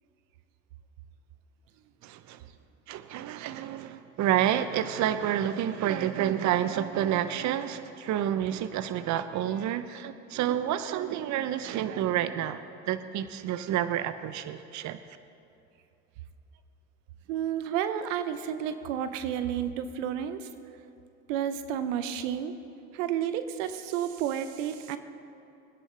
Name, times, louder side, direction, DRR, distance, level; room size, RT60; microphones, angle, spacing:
voice 1, 2.0-2.4 2.9-15.0, right 11 dB, 50° right, 12 dB, 0.7 m, -29 dB
voice 2, 17.3-20.5 21.3-22.5 22.9-25.0, right 9 dB, 80° right, 10 dB, 0.8 m, -31 dB
22.0 x 10.0 x 3.3 m, 2.7 s
hypercardioid pair, 75°, 37 cm